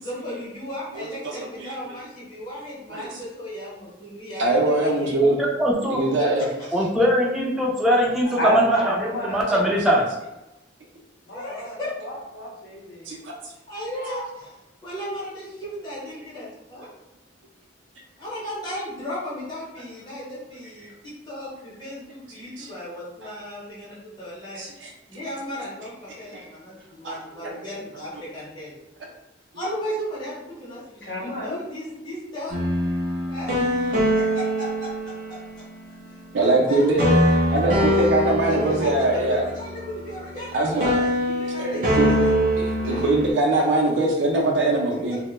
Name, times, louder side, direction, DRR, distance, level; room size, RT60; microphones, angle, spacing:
voice 1, 0.0-5.1 6.2-6.7 11.3-11.9 13.7-16.9 18.2-24.6 25.1-28.7 29.5-32.6 33.3-35.6 36.1-36.9 37.7-38.1 38.5-42.3 42.8-43.0, equal, 25° left, -8 dB, 0.8 m, -35 dB
voice 2, 1.0-1.3 1.6-1.7 2.9-3.1 4.4-5.4 5.9-6.5 13.1-13.3 22.6-22.7 24.6-24.9 26.3-26.4 27.0-27.2 27.4-27.5 36.3-37.1 37.5-39.4 40.5-40.9 41.6-42.1 42.6-45.2, right 2 dB, 90° right, -1 dB, 0.5 m, -22 dB
voice 3, 5.6-6.0 6.7-10.0, equal, 5° right, -3 dB, 0.4 m, -21 dB
voice 4, 8.4-10.1 11.3-13.1 31.0-31.7, equal, 65° left, -4 dB, 0.6 m, -30 dB
sound 1, 32.5-35.6 37.0-40.5 40.8-43.3, equal, 45° right, 0.6 m, -23 dB
2.1 x 2.1 x 3.0 m, 0.96 s
head